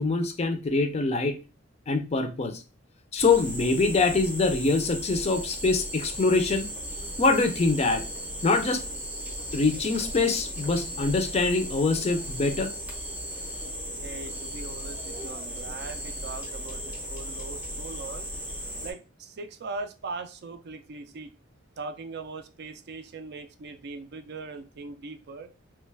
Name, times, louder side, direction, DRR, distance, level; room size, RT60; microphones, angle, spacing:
voice 1, 0.0-1.4 1.9-2.6 3.1-6.7 7.2-8.0 8.4-8.8 9.5-12.7, left 3 dB, 30° left, 0.4 m, -24 dB
sound 1, 3.2-18.9, equal, 10° right, 0.6 m, -36 dB
voice 2, 13.9-18.3 18.8-21.3 21.8-25.5, right 3 dB, 55° right, 0.4 m, -40 dB
3.0 x 2.2 x 3.3 m
head